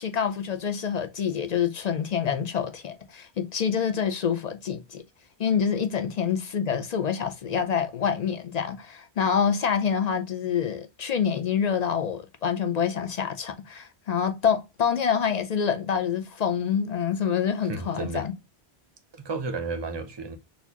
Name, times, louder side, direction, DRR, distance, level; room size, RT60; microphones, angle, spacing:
voice 1, 0.0-5.0 5.4-18.3, left 7 dB, 55° left, 0.5 m, -26 dB
voice 2, 17.6-18.3 19.1-20.4, right 4 dB, 30° right, 0.5 m, -32 dB
4.2 x 2.4 x 2.8 m
omnidirectional pair, 1.1 m